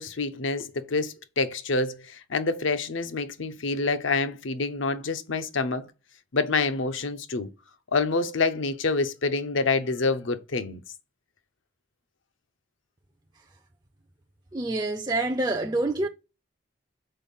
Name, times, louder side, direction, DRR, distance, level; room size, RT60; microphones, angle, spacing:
voice 1, 0.0-5.9 6.3-7.5 7.9-10.8, left 3 dB, 75° left, 0.8 m, -27 dB
voice 2, 14.5-16.1, right 2 dB, 20° right, 0.4 m, -26 dB
5.6 x 4.5 x 5.5 m
head